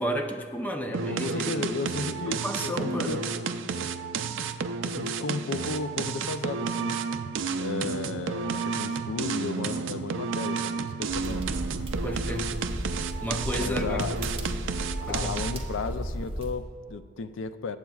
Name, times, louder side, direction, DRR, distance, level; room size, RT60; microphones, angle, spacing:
voice 1, 0.0-1.5 2.2-3.3 12.0-12.5 13.2-14.1 15.1-15.4, equal, 10° left, 4 dB, 0.6 m, -32 dB
sound 1, 0.9-15.7, right 5 dB, 70° right, 0.4 m, -31 dB
voice 2, 1.1-3.2 4.8-7.0 7.6-11.5 13.6-14.2 15.0-17.8, left 4 dB, 75° left, 11 dB, 0.4 m, -34 dB
sound 2, 11.1-16.5, right 1 dB, 30° right, 1.0 m, -34 dB
19.5 x 8.2 x 2.4 m, 2.1 s
head